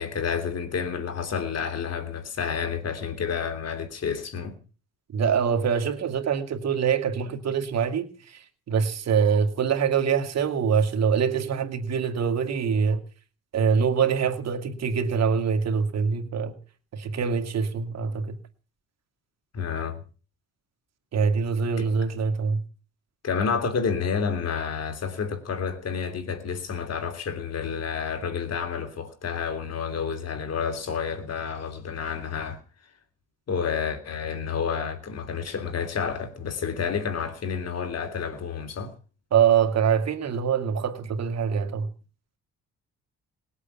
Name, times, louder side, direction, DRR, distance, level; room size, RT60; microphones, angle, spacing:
voice 1, 0.0-4.6 19.5-20.0 21.8-21.9 23.2-32.6 33.5-38.9, left 6 dB, 55° left, 3.2 m, -30 dB
voice 2, 5.1-13.0 13.5-16.6 16.9-18.4 21.1-22.6 39.3-41.9, right 6 dB, 60° right, 2.3 m, -24 dB
20.0 x 8.4 x 7.1 m
cardioid pair, 90°, 30 cm